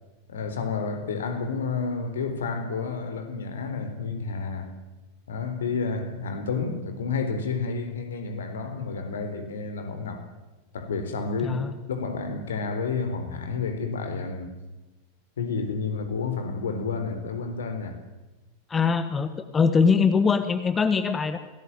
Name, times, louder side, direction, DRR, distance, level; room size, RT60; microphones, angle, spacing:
voice 1, 0.3-4.8 5.3-10.3 10.7-14.5 15.4-18.0, left 4 dB, 65° left, 4.0 m, -30 dB
voice 2, 11.4-11.7 18.7-21.4, left 5 dB, 15° left, 1.5 m, -22 dB
26.5 x 18.0 x 9.3 m
figure-of-eight pair, 90°, 0 cm